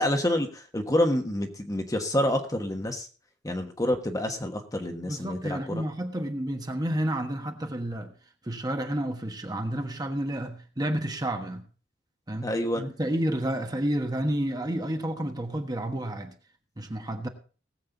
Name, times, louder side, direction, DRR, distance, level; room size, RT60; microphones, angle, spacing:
voice 1, 0.0-3.1 3.4-5.8 12.4-12.8, left 1 dB, 20° left, 1.3 m, -28 dB
voice 2, 5.0-8.1 8.4-11.6 12.3-16.3 16.8-17.3, right 1 dB, 20° right, 1.3 m, -30 dB
19.0 x 7.7 x 3.9 m
head